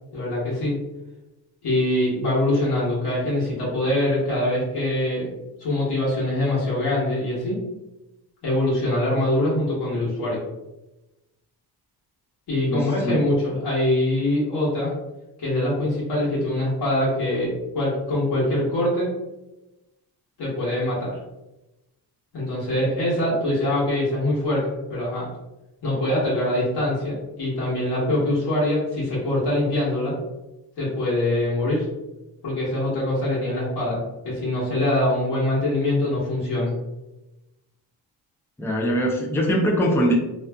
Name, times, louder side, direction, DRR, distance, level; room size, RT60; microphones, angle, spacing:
voice 1, 0.1-0.7 1.6-5.3 5.6-7.6 8.4-10.4 12.5-14.9 15.4-19.2 20.4-21.1 22.3-25.3 25.8-30.2 30.8-31.9 32.4-36.8, left 1 dB, 75° left, -7 dB, 1.2 m, -23 dB
voice 2, 12.7-13.2 38.6-40.1, equal, 5° left, -2 dB, 0.4 m, -22 dB
2.5 x 2.4 x 2.2 m, 0.98 s
cardioid pair, 100°, 39 cm